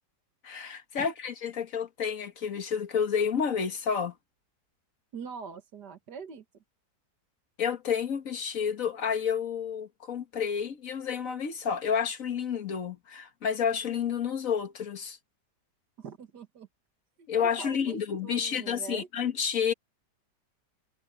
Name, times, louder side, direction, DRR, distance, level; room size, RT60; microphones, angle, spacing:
voice 1, 0.4-4.1 7.6-15.2 17.3-19.7, left 7 dB, 50° left, 1.9 m, -30 dB
voice 2, 5.1-6.4 16.0-16.7 17.2-19.1, right 6 dB, 70° right, 2.2 m, -43 dB
omnidirectional pair, 1.9 m